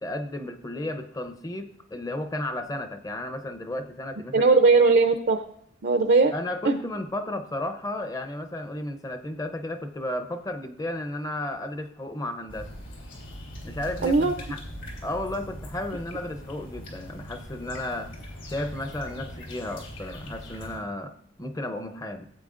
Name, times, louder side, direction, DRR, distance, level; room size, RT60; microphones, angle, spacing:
voice 1, 0.0-4.5 6.3-12.7 13.6-14.6 15.0-18.1 18.5-22.3, left 1 dB, 15° left, 7 dB, 0.6 m, -33 dB
voice 2, 4.3-5.4 5.8-6.3 6.6-6.7 14.0-14.3, right 3 dB, 55° right, 7 dB, 0.5 m, -19 dB
sound 1, 12.5-20.8, equal, 70° left, 2.9 m, -41 dB
15.5 x 8.2 x 2.5 m, 0.67 s
head